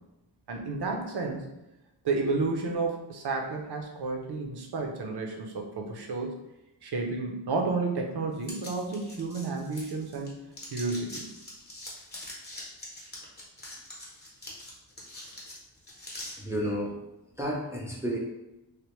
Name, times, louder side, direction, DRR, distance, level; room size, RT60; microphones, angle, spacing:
voice 1, 0.5-1.4 2.0-6.3 6.8-10.3 10.7-11.3, right 3 dB, 65° right, 2 dB, 0.6 m, -31 dB
sound 1, 8.4-10.3 10.5-16.3, left 1 dB, 20° left, 0.8 m, -43 dB
voice 2, 16.4-17.0 17.4-18.2, equal, 5° right, -4 dB, 0.4 m, -31 dB
3.2 x 2.1 x 2.9 m, 0.96 s
wide cardioid pair, 150°, 43 cm